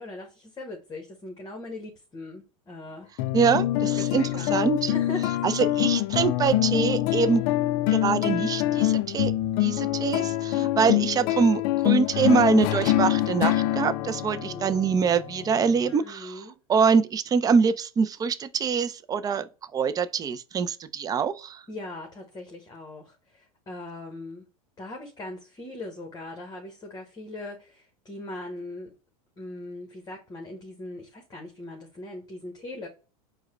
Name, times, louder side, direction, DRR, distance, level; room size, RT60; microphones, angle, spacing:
voice 1, 0.0-3.1 3.9-4.6 4.9-5.6 10.5-11.1 14.3-14.8 15.9-16.6 21.7-24.4 24.8-28.9 29.4-32.9, left 2 dB, 20° left, 1.1 m, -40 dB
sound 1, 3.2-15.9, left 14 dB, 50° left, 0.4 m, -25 dB
voice 2, 3.3-4.9 5.4-7.4 7.9-9.3 9.6-16.4 16.7-21.6, right 6 dB, 20° right, 0.4 m, -24 dB
4.6 x 2.2 x 4.3 m
hypercardioid pair, 105°, 19 cm